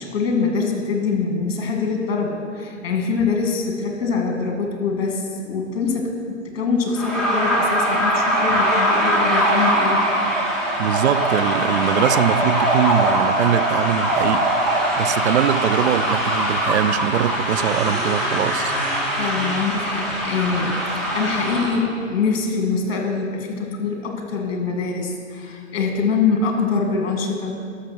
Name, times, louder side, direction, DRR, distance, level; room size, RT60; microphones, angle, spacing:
voice 1, 0.0-10.0 19.2-20.8 21.1-27.6, left 4 dB, 50° left, 2.2 m, -24 dB
sound 1, 6.9-21.8, right 1 dB, ahead, 2.1 m, -21 dB
voice 2, 10.8-14.5 15.0-18.7, right 10 dB, 60° right, 0.5 m, -22 dB
12.5 x 6.5 x 6.1 m
figure-of-eight pair, 125°, 39 cm